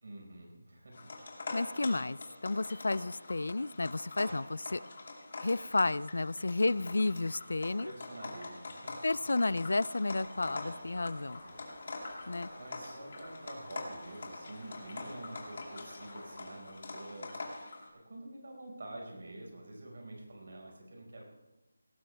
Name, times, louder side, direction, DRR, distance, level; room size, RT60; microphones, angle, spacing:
voice 1, 0.0-1.1 6.7-7.3 7.8-9.1 10.4-10.8 11.4-11.7 12.6-17.4 17.9-21.2, right 1 dB, 60° right, 0 dB, 5.1 m, -48 dB
sound 1, 0.9-17.9, left 3 dB, 45° left, 2.5 m, -45 dB
voice 2, 1.5-4.8 5.4-7.9 9.0-11.4 12.3-12.5, left 2 dB, 75° left, 21 dB, 0.4 m, -32 dB
sound 2, 10.2-16.4, left 1 dB, 30° left, 3.9 m, -53 dB
18.0 x 15.0 x 3.4 m, 0.97 s
figure-of-eight pair, 170°, 0 cm